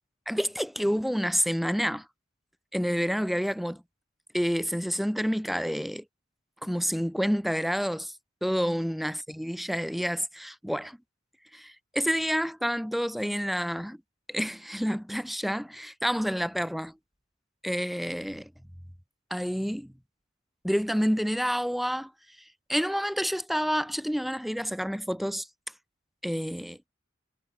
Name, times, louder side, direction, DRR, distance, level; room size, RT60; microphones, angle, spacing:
voice 1, 0.3-2.1 2.7-3.8 4.3-6.0 6.6-8.1 8.4-11.0 11.5-14.0 14.3-16.9 17.6-18.5 19.3-19.9 20.6-22.1 22.7-25.5 26.2-26.8, equal, ahead, 5.5 m, -29 dB
head